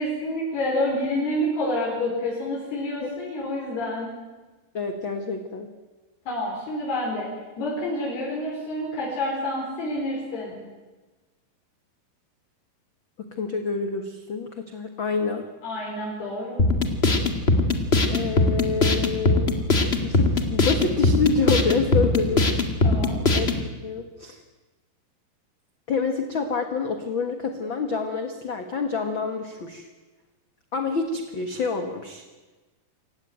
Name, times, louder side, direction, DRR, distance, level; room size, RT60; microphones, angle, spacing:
voice 1, 0.0-4.1 6.3-7.3 7.6-10.6 15.6-16.6 22.8-23.2, left 1 dB, 85° left, -3 dB, 6.7 m, -28 dB
voice 2, 4.7-5.7 13.2-15.5 18.1-19.5 20.0-22.5 23.3-24.4 25.9-29.9 30.7-32.2, left 4 dB, 50° left, 6 dB, 1.5 m, -27 dB
sound 1, 16.6-23.6, left 2 dB, 30° left, 1.1 m, -21 dB
27.5 x 16.0 x 9.3 m, 1.2 s
omnidirectional pair, 4.5 m